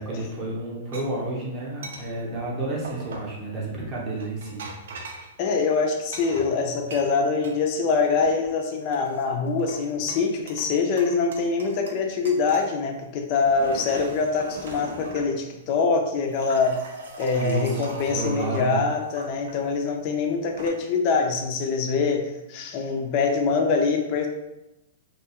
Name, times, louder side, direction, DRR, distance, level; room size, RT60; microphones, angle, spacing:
voice 1, 0.0-4.7 17.3-18.8, right 1 dB, 20° right, -4 dB, 0.7 m, -30 dB
sound 1, 0.9-1.0 1.8-2.1 2.8-3.4 4.2-5.3 6.1-7.6 7.9-8.5 8.9-9.8 10.1-10.7 11.0-12.0 12.2-12.7 13.3-15.3 16.1-19.6 20.3-20.7, right 2 dB, 80° right, 0.5 m, -40 dB
voice 2, 5.4-16.8 17.2-24.3, left 4 dB, 30° left, 3 dB, 0.4 m, -24 dB
2.6 x 2.2 x 2.8 m, 0.94 s
hypercardioid pair, 170°, 0 cm